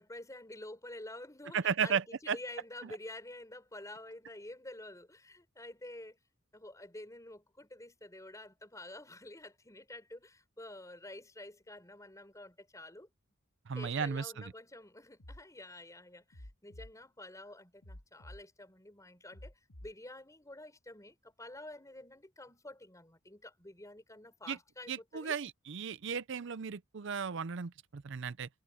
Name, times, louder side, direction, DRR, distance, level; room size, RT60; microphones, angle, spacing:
voice 1, 0.0-6.2 6.5-13.1 13.7-19.5 19.8-25.3, left 1 dB, 15° left, 5.3 m, -49 dB
voice 2, 1.5-2.4 13.7-14.4 24.5-24.6 24.9-28.5, right 6 dB, 60° right, 0.6 m, -35 dB
sound 1, 15.2-15.4 16.3-16.9 17.8-18.4 19.3-19.9, left 1 dB, 90° left, 2.0 m, -50 dB
head